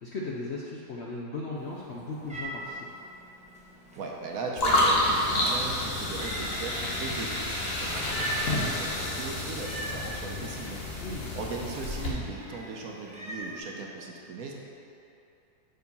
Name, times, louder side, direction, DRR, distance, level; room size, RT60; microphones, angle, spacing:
voice 1, 0.0-2.9 11.0-11.3, left 2 dB, 60° left, -4 dB, 0.7 m, -37 dB
Meow, 1.6-13.6, right 1 dB, 5° right, 0.5 m, -42 dB
voice 2, 4.0-10.8 11.4-14.5, right 3 dB, 65° right, -1 dB, 1.1 m, -38 dB
sound 1, 4.6-12.1, left 1 dB, 40° left, 1.1 m, -29 dB
6.6 x 4.8 x 5.3 m, 2.7 s
omnidirectional pair, 1.8 m